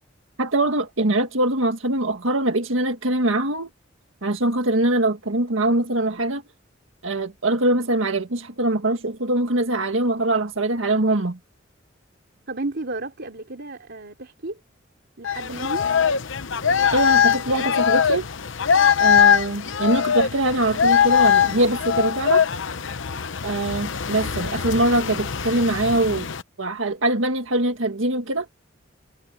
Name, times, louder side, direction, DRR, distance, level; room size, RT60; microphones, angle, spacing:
voice 1, 0.4-3.7 4.2-6.4 7.0-11.4 16.9-18.3 19.0-22.5 23.4-26.3 26.6-28.5, right 1 dB, 80° right, 1.7 m, -23 dB
voice 2, 12.5-14.6 15.2-15.9, right 2 dB, 60° right, 3.2 m, -32 dB
sound 1, 15.2-26.4, left 7 dB, 70° left, 0.9 m, -21 dB
head